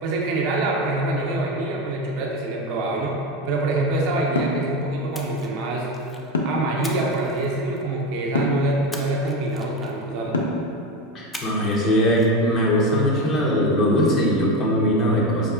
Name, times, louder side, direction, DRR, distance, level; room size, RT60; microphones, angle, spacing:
voice 1, 0.0-3.2 3.4-5.9 6.4-10.4, right 2 dB, 55° right, -2 dB, 0.5 m, -25 dB
sound 1, 4.4-4.6 6.3-6.7 8.3-8.6 10.3-10.7, left 2 dB, 80° left, 0.3 m, -24 dB
Splash splatter, 5.1-6.3 6.8-8.0 8.9-10.2 11.3-11.8 12.1-12.3, left 1 dB, 10° left, 0.4 m, -40 dB
voice 2, 11.1-15.5, equal, 40° left, -4 dB, 0.7 m, -20 dB
4.8 x 2.3 x 2.4 m, 2.7 s
figure-of-eight pair, 85°, 0 cm